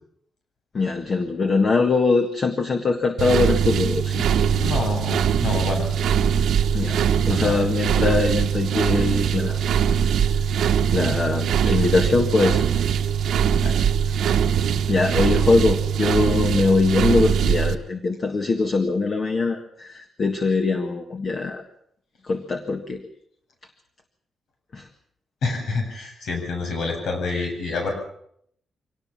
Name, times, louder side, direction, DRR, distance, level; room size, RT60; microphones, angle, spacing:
voice 1, 0.7-4.2 6.7-7.0 7.3-9.6 10.9-12.6 14.9-21.6 22.3-23.0 24.7-24.8, left 3 dB, 35° left, 6 dB, 1.6 m, -22 dB
sound 1, 3.2-17.7, right 8 dB, 85° right, 1.3 m, -21 dB
voice 2, 4.5-5.9 7.3-7.7 11.6-11.7 13.6-13.8 25.4-27.9, left 3 dB, 75° left, 3 dB, 8.0 m, -28 dB
24.5 x 18.5 x 7.2 m, 0.69 s
wide cardioid pair, 170°, 0 cm